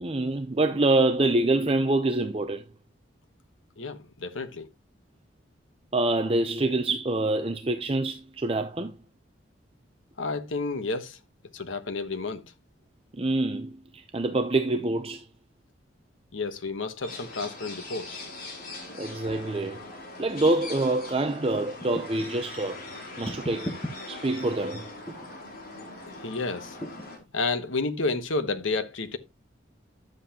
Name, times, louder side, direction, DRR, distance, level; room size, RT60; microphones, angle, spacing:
voice 1, 0.0-2.6 5.9-9.0 13.2-15.2 19.0-19.8 20.2-22.8 23.2-23.7 24.1-24.9, right 2 dB, 30° right, 0.6 m, -26 dB
voice 2, 3.8-4.7 10.2-11.2 11.5-12.4 16.3-18.3 26.1-26.8 27.3-29.2, left 3 dB, 85° left, 1.2 m, -31 dB
sound 1, 17.0-27.2, left 2 dB, 50° left, 4.1 m, -41 dB
sound 2, 21.8-22.3 23.2-23.9 25.1-25.3 26.8-27.1, equal, 15° left, 1.2 m, -36 dB
11.0 x 7.8 x 2.9 m
head